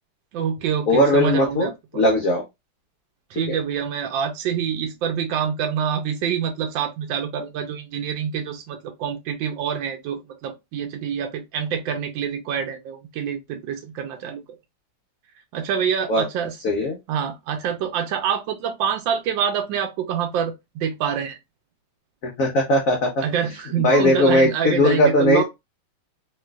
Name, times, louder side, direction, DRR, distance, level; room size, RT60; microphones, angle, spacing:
voice 1, 0.3-2.0 3.3-14.4 15.5-16.6 17.1-21.4 23.2-25.4, right 8 dB, 75° right, 1.2 m, -26 dB
voice 2, 0.9-1.7 1.9-2.4 3.5-3.6 16.1-16.3 16.6-17.0 22.2-23.2 23.8-25.4, left 1 dB, 80° left, 0.7 m, -19 dB
3.1 x 3.1 x 2.3 m
omnidirectional pair, 2.4 m